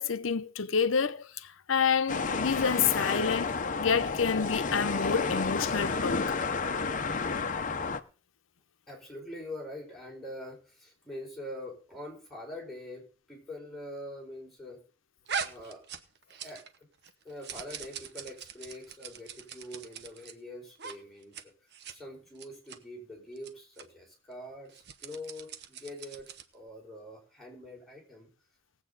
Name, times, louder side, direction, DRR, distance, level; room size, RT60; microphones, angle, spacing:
voice 1, 0.0-6.3, left 6 dB, 80° left, 0.8 m, -28 dB
sound 1, 2.1-8.0, left 4 dB, 40° left, 0.8 m, -31 dB
voice 2, 8.9-14.8 15.4-15.8 16.4-16.9 17.2-21.5 21.9-28.3, left 1 dB, ahead, 4.5 m, -44 dB
sound 2, 15.3-16.8 17.0-20.3 20.8-21.0 21.2-21.4 21.7-22.0 22.4-22.8 23.4-23.5 23.8-23.9 24.7-26.5, right 7 dB, 60° right, 0.9 m, -41 dB
19.0 x 8.2 x 4.0 m
head